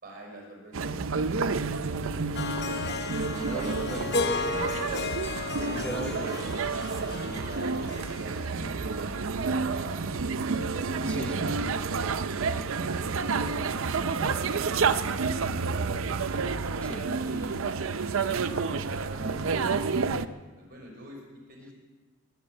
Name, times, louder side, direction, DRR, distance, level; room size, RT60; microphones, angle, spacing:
voice 1, 0.0-2.6 5.9-6.3 6.9-10.2 10.5-11.7 12.5-14.5 14.8-16.0 17.0-17.6 18.0-19.8 20.4-21.2 21.5-21.7, equal, 45° right, 0 dB, 4.7 m, -45 dB
sound 1, 0.7-20.3, right 4 dB, 70° right, 0.6 m, -29 dB
Harp, 2.3-9.5, left 3 dB, 50° left, 0.9 m, -34 dB
voice 2, 3.4-4.7 5.6-6.3 11.1-11.5 16.8-17.1, equal, 5° left, 5 dB, 0.9 m, -38 dB
19.5 x 8.6 x 7.6 m, 1.3 s
head